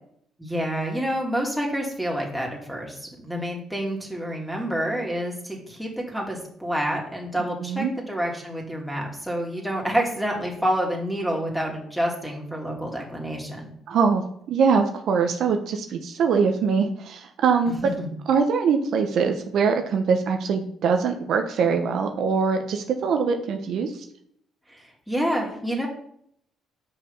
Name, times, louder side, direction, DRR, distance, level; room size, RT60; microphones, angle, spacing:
voice 1, 0.4-13.7 17.8-18.1 24.7-25.9, equal, ahead, -2 dB, 2.7 m, -28 dB
voice 2, 7.6-7.9 13.9-17.7 18.3-24.0, right 5 dB, 65° right, 4 dB, 1.0 m, -23 dB
7.8 x 5.5 x 5.5 m, 0.68 s
cardioid pair, 85°, 0 cm